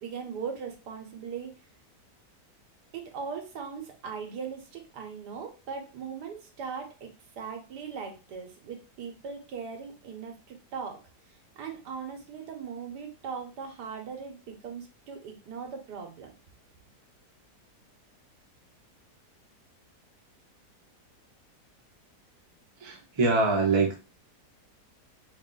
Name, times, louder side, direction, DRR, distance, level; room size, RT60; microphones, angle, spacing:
voice 1, 0.0-1.5 2.9-7.1 7.4-11.0 11.6-16.3, right 6 dB, 75° right, 3 dB, 1.4 m, -39 dB
voice 2, 22.8-24.0, right 3 dB, 45° right, 0 dB, 0.3 m, -24 dB
3.4 x 2.4 x 3.7 m, 0.31 s
omnidirectional pair, 1.8 m